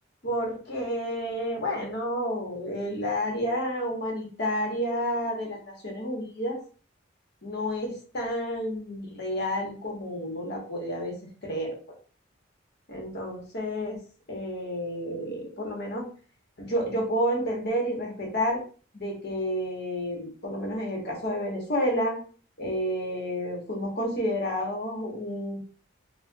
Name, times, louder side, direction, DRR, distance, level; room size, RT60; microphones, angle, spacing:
voice 1, 0.2-6.6 7.4-11.2 11.4-11.7 12.9-14.0 14.3-16.1 16.6-18.6 18.9-22.2 22.6-25.6, equal, 50° left, 0 dB, 1.1 m, -30 dB
4.2 x 2.2 x 2.2 m, 0.40 s
head